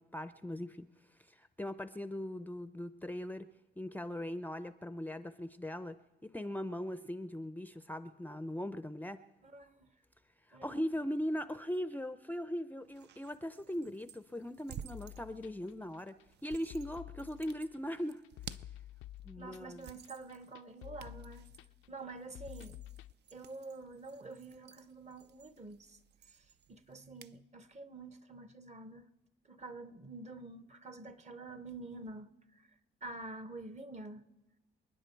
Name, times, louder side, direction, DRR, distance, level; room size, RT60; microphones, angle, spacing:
voice 1, 0.0-3.5 3.8-9.2 10.5-18.2 19.2-19.9, equal, 10° left, 0.5 m, -40 dB
voice 2, 9.4-9.9 10.5-10.8 19.4-21.5 21.9-22.8 23.3-26.0 26.3-29.1 29.4-32.7 33.0-34.3, right 2 dB, 35° right, 1.0 m, -48 dB
sound 1, 12.8-27.4, right 9 dB, 60° right, 0.6 m, -55 dB
sound 2, 14.9-23.1, left 14 dB, 90° left, 0.5 m, -51 dB
29.0 x 9.8 x 4.5 m
cardioid pair, 90°, 20 cm